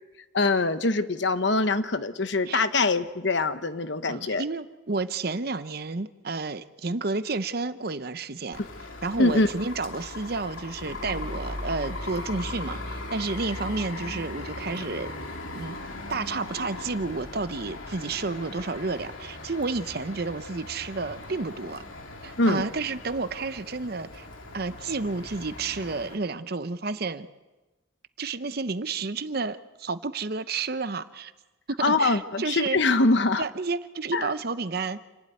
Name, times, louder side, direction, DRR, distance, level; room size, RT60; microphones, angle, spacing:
voice 1, 0.3-4.4 9.2-9.5 22.4-22.6 31.8-33.4 34.1-34.3, left 3 dB, 65° left, 11 dB, 1.1 m, -23 dB
voice 2, 4.1-8.6 9.0-15.1 15.5-15.8 16.1-21.8 22.2-24.3 24.5-27.3 28.2-31.3 31.7-32.8 33.4-35.0, right 3 dB, 50° right, 12 dB, 0.8 m, -31 dB
sound 1, 8.5-26.2, left 2 dB, 90° left, 2.7 m, -39 dB
28.5 x 12.0 x 9.5 m, 1.1 s
head